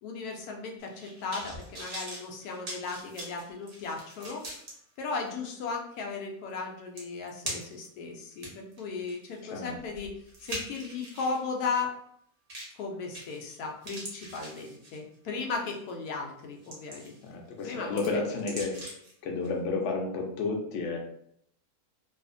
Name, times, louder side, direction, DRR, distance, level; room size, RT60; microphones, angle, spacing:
voice 1, 0.0-4.4 5.0-10.1 10.4-12.0 12.8-18.2, left 4 dB, 80° left, 1 dB, 1.1 m, -36 dB
sound 1, 0.8-4.7 5.3-5.4 6.5-6.6 7.0-7.9 8.3-11.4 12.5-12.8 13.1-13.5 13.8-15.1 15.7-15.9 16.4-17.3 17.6-19.1 19.4-19.5, right 1 dB, 45° right, 0.8 m, -42 dB
voice 2, 17.2-18.8 19.2-21.0, left 3 dB, 60° left, 0 dB, 0.8 m, -31 dB
2.7 x 2.4 x 2.5 m, 0.69 s
omnidirectional pair, 1.6 m